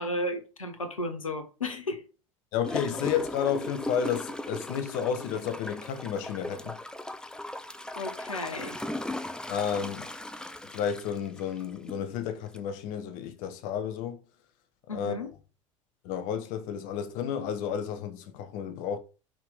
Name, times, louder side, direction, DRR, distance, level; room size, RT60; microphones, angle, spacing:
voice 1, 0.0-2.0 8.0-8.8 14.9-15.3, left 1 dB, 85° left, 1.0 m, -33 dB
voice 2, 2.5-6.8 9.5-10.1 10.6-14.2 14.9-15.3 16.0-19.0, left 8 dB, 55° left, 1.0 m, -31 dB
Gurgling / Toilet flush, 2.6-12.0 12.5-12.6, left 1 dB, 5° left, 0.6 m, -38 dB
5.8 x 4.6 x 3.6 m
figure-of-eight pair, 70°, 17 cm